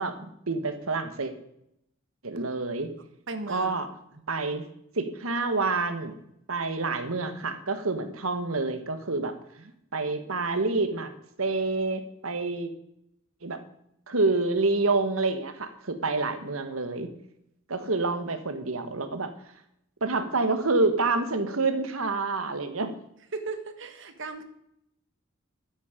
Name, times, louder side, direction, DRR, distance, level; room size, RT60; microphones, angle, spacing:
voice 1, 0.0-1.3 2.2-2.9 3.5-3.9 4.3-4.6 4.9-6.1 6.5-9.4 9.9-11.1 11.4-12.7 13.4-13.6 14.1-17.1 17.7-19.3 20.0-22.9, right 3 dB, 85° right, 9 dB, 1.6 m, -27 dB
voice 2, 3.3-3.7 9.6-9.7 23.3-24.4, right 3 dB, 65° right, 8 dB, 1.6 m, -36 dB
13.0 x 9.7 x 5.2 m, 0.77 s
head